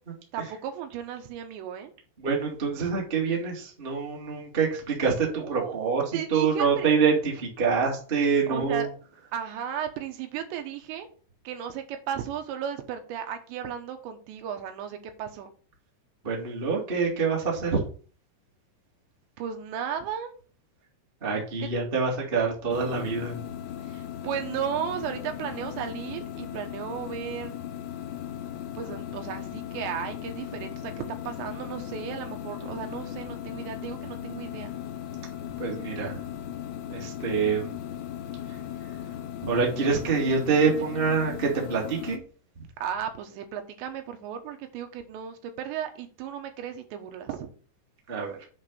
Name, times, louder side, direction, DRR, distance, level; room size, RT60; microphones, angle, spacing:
voice 1, 0.3-1.9 5.4-6.9 8.5-8.9 9.3-11.1 11.4-15.5 19.4-20.3 21.6-21.7 23.8-27.6 28.7-30.9 31.2-34.7 42.8-47.5, right 8 dB, 80° right, 6 dB, 3.3 m, -35 dB
voice 2, 2.2-8.9 16.2-17.8 21.2-23.4 35.6-36.2 36.9-37.8 38.5-38.6 39.4-42.2 48.1-48.4, right 5 dB, 45° right, -1 dB, 0.6 m, -26 dB
sound 1, 22.7-42.2, left 10 dB, 90° left, 3.0 m, -37 dB
8.0 x 3.9 x 6.5 m, 0.40 s
omnidirectional pair, 5.1 m